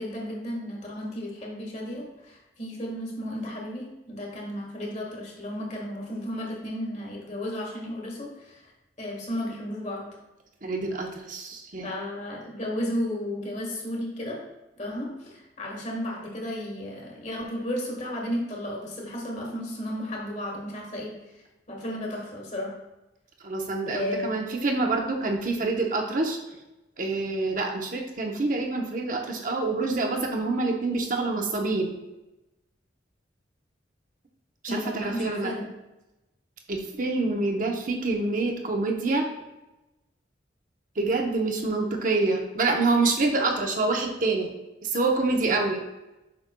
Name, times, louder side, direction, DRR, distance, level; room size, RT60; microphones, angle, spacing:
voice 1, 0.0-8.6 9.0-10.0 11.8-14.4 14.7-21.1 21.7-22.7 23.9-24.4 34.7-35.7, left 1 dB, 40° left, -1 dB, 1.6 m, -33 dB
voice 2, 10.6-11.9 23.4-26.4 27.0-32.0 34.6-35.5 36.7-39.3 41.0-44.5 44.8-45.8, right 3 dB, 45° right, 2 dB, 0.8 m, -26 dB
7.5 x 6.0 x 2.2 m, 0.99 s
head